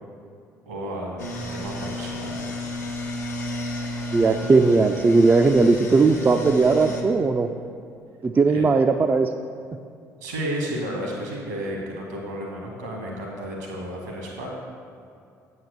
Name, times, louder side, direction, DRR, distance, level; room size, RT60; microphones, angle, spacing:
voice 1, 0.6-2.5 8.4-8.7 10.2-14.5, equal, 75° right, -1 dB, 1.7 m, -32 dB
sound 1, 1.2-7.0, left 1 dB, 85° left, 0.7 m, -32 dB
voice 2, 4.1-7.5 8.2-9.3, right 3 dB, 20° right, 6 dB, 0.4 m, -18 dB
7.7 x 4.5 x 6.6 m, 2.4 s
figure-of-eight pair, 50°, 9 cm